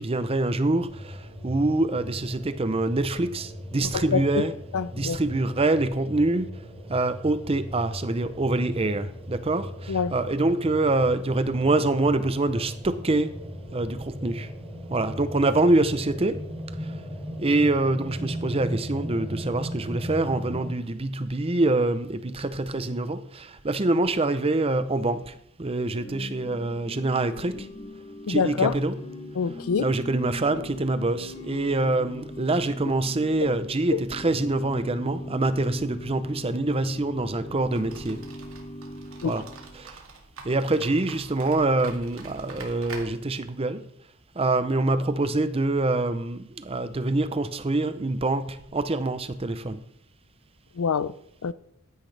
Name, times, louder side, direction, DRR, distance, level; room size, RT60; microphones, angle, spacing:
voice 1, 0.0-4.5 4.9-6.5 6.9-13.3 13.7-14.5 14.9-16.4 16.8-16.9 17.4-27.7 28.3-29.0 29.8-38.3 39.2-39.4 39.7-40.0 40.4-43.9 44.4-49.8, right 2 dB, 25° right, 0.6 m, -25 dB
sound 1, 0.8-20.7, equal, 5° left, 3.5 m, -38 dB
voice 2, 3.8-4.4 4.7-5.2 9.9-10.1 28.3-28.7 29.4-29.9 33.9-34.0 39.2-39.3 50.8-51.1 51.4-51.5, left 6 dB, 70° left, 0.5 m, -25 dB
Organ / Church bell, 25.7-39.9, left 1 dB, 25° left, 0.9 m, -41 dB
sound 2, 37.7-43.0, right 4 dB, 65° right, 2.3 m, -45 dB
14.5 x 10.0 x 3.3 m
head